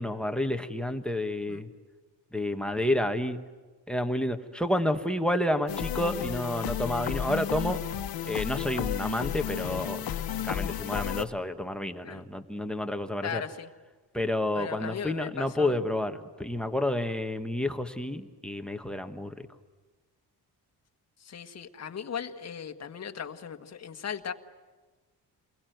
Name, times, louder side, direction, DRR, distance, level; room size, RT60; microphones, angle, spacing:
voice 1, 0.0-1.7 2.3-3.4 3.9-7.8 8.2-10.0 10.4-13.4 14.1-19.3, left 1 dB, ahead, 9 dB, 1.3 m, -30 dB
sound 1, 5.7-11.3, left 10 dB, 60° left, 1.3 m, -32 dB
voice 2, 13.2-13.7 14.5-15.8 21.2-24.3, left 7 dB, 40° left, 6 dB, 1.6 m, -37 dB
29.5 x 22.0 x 9.3 m, 1.4 s
cardioid pair, 160°, 40 cm